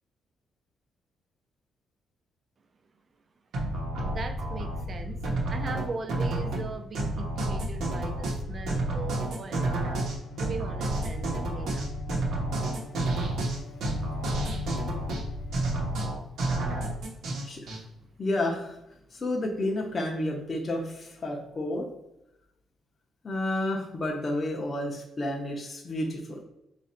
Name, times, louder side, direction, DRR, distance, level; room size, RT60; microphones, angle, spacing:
sound 1, 3.5-17.8, right 1 dB, 70° right, 0.9 m, -30 dB
voice 1, 4.0-5.2 5.5-9.9 10.4-11.9, right 4 dB, 30° right, 7 dB, 0.4 m, -39 dB
Bowed string instrument, 8.1-16.6, left 5 dB, 65° left, 1.0 m, -46 dB
voice 2, 13.0-13.9 17.4-17.8 18.2-18.8 19.1-21.9 23.2-26.4, left 1 dB, 25° left, -1 dB, 0.6 m, -31 dB
4.1 x 2.5 x 4.1 m, 0.85 s
cardioid pair, 160°, 0 cm